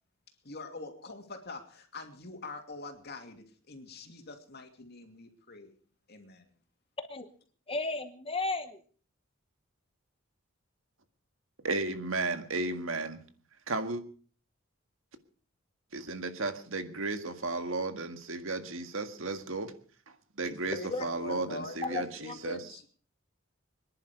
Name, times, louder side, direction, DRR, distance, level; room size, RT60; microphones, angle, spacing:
voice 1, 0.4-5.7 6.1-6.5 20.5-22.9, left 2 dB, 50° left, 5 dB, 2.8 m, -44 dB
voice 2, 7.7-8.8 20.9-21.0 21.8-22.4, left 3 dB, 25° left, 9 dB, 1.0 m, -34 dB
voice 3, 11.7-13.2 13.7-14.0 15.9-19.7 20.4-22.6, right 3 dB, 75° right, 8 dB, 1.8 m, -34 dB
25.0 x 11.0 x 5.2 m, 0.43 s
head